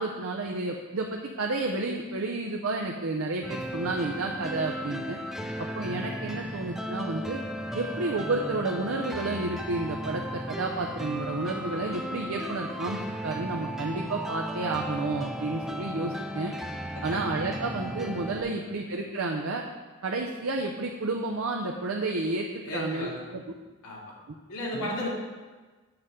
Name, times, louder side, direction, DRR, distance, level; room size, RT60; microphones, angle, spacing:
voice 1, 0.0-5.2 5.6-7.4 7.7-16.5 17.0-19.6 20.0-23.4 24.7-24.8, right 2 dB, 65° right, 1 dB, 0.6 m, -31 dB
sound 1, 3.4-18.4, equal, ahead, 0.3 m, -35 dB
voice 2, 18.4-18.7 22.6-23.2 23.8-24.0 24.5-25.1, left 1 dB, 85° left, -5 dB, 2.3 m, -35 dB
7.9 x 3.6 x 6.7 m, 1.3 s
head